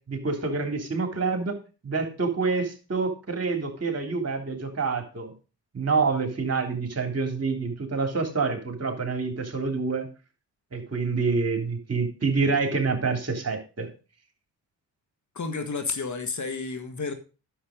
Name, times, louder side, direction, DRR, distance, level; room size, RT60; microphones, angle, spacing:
voice 1, 0.1-1.6 1.8-5.3 5.7-10.1 10.7-13.9, right 4 dB, 35° right, 4 dB, 3.4 m, -27 dB
voice 2, 15.4-17.1, left 4 dB, 45° left, 8 dB, 1.8 m, -31 dB
10.0 x 7.4 x 5.2 m, 0.34 s
supercardioid pair, 55°, 42 cm